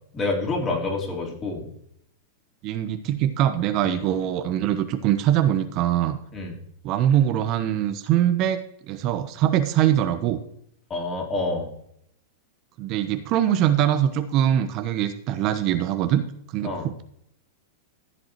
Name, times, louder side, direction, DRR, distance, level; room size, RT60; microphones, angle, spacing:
voice 1, 0.1-1.7 3.8-4.0 6.3-6.6 10.9-11.7 16.6-16.9, left 3 dB, 25° left, -2 dB, 3.8 m, -28 dB
voice 2, 2.6-6.2 6.8-8.6 8.9-10.4 12.8-16.2 16.5-17.0, right 11 dB, 45° right, 9 dB, 0.9 m, -22 dB
14.5 x 7.7 x 3.1 m, 0.72 s
hypercardioid pair, 105°, 0 cm